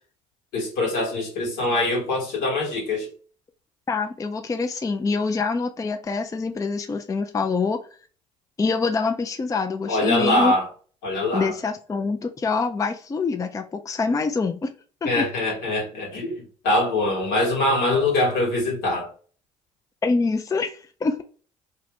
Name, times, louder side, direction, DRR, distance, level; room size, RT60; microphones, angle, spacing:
voice 1, 0.5-3.1 9.9-10.7 11.0-11.5 15.0-19.1, left 2 dB, 75° left, 1.4 m, -23 dB
voice 2, 3.9-7.8 8.6-10.5 11.3-14.7 15.0-15.3 20.0-21.2, left 4 dB, 20° left, 0.4 m, -25 dB
2.5 x 2.5 x 3.3 m
hypercardioid pair, 50°, 17 cm